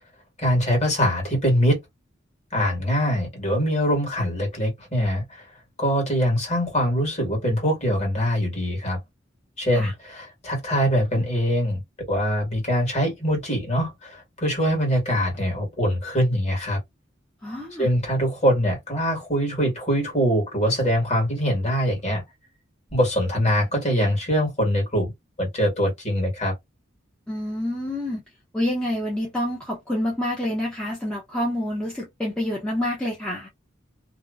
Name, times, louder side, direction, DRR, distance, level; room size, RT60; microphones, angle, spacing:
voice 1, 0.4-1.8 2.5-5.5 5.8-9.0 9.6-11.8 12.1-16.8 17.8-22.2 22.9-25.1 25.4-26.5, equal, 35° left, 1.4 m, -23 dB
voice 2, 17.4-17.9 27.3-28.2 28.5-33.5, left 1 dB, 5° left, 0.6 m, -27 dB
2.6 x 2.0 x 2.3 m
head